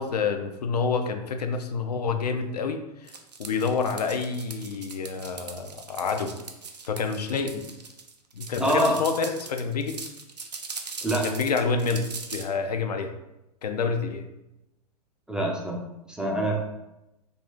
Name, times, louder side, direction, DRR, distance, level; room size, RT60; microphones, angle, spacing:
voice 1, 0.0-3.1 3.4-6.3 6.9-7.7 8.3-10.0 11.2-13.1 13.6-14.3, left 5 dB, 75° left, 6 dB, 0.4 m, -28 dB
sound 1, 3.1-12.4, right 5 dB, 85° right, 0.5 m, -40 dB
voice 2, 8.6-9.0 11.0-11.2 15.3-15.8 16.1-16.6, right 1 dB, 5° right, -1 dB, 0.3 m, -25 dB
2.6 x 2.4 x 3.5 m, 0.93 s
figure-of-eight pair, 100°, 21 cm